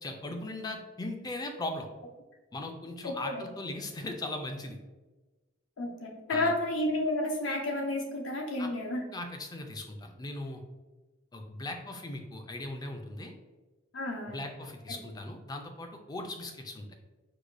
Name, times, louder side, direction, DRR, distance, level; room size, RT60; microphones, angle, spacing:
voice 1, 0.0-1.9 2.5-4.8 6.3-6.5 8.6-8.7 9.1-10.6 11.3-13.3 14.3-16.9, left 2 dB, 20° left, 4 dB, 0.3 m, -39 dB
voice 2, 3.0-3.4 5.8-9.0 13.9-14.4 14.9-15.0, left 1 dB, 70° left, 1 dB, 0.6 m, -31 dB
4.7 x 2.2 x 2.5 m, 1.2 s
head